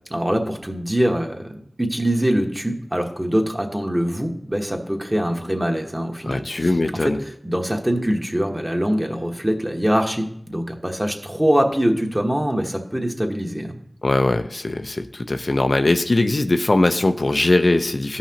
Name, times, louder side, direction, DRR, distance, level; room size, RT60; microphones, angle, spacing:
voice 1, 0.1-7.2 7.4-13.8, equal, 20° right, 2 dB, 1.2 m, -23 dB
voice 2, 6.2-7.2 14.0-18.2, left 2 dB, 65° left, 7 dB, 0.4 m, -20 dB
14.5 x 5.7 x 2.9 m, 0.70 s
wide cardioid pair, 50°, 0 cm